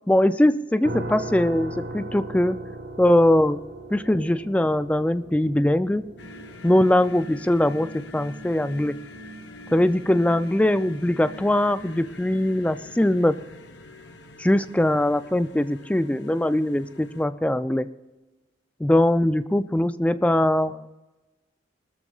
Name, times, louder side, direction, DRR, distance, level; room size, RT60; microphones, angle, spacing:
voice 1, 0.1-2.6 3.0-3.6 3.9-6.1 6.6-9.0 9.7-13.4 14.4-17.9 18.8-20.9, left 1 dB, 5° left, 12 dB, 0.3 m, -21 dB
sound 1, 0.8-13.7, right 1 dB, 60° right, 1.4 m, -40 dB
sound 2, 6.2-17.2, left 1 dB, 65° left, 0.9 m, -44 dB
20.5 x 13.5 x 2.4 m, 1.1 s
head